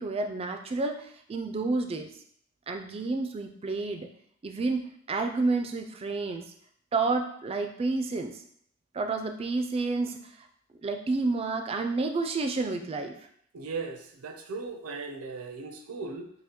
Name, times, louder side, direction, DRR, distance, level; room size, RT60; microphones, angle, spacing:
voice 1, 0.0-2.1 2.7-4.1 4.4-6.5 6.9-8.4 8.9-10.5 10.8-13.3, right 3 dB, 25° right, 5 dB, 0.3 m, -30 dB
voice 2, 13.5-16.3, right 4 dB, 75° right, 5 dB, 0.5 m, -37 dB
5.4 x 2.1 x 2.9 m, 0.66 s
head